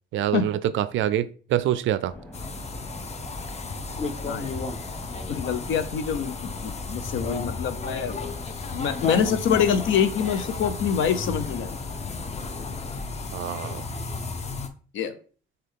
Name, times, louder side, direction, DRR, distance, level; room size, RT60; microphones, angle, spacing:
voice 1, 0.1-2.1 13.3-13.8, right 12 dB, 75° right, 0.4 m, -25 dB
sound 1, 2.1-13.0, left 2 dB, 5° left, 0.9 m, -42 dB
sound 2, 2.3-14.7, left 4 dB, 35° left, 0.6 m, -33 dB
voice 2, 5.3-8.1 8.7-11.8 14.9-15.1, left 7 dB, 75° left, 0.6 m, -25 dB
6.6 x 2.3 x 3.5 m
cardioid pair, 90°, 20 cm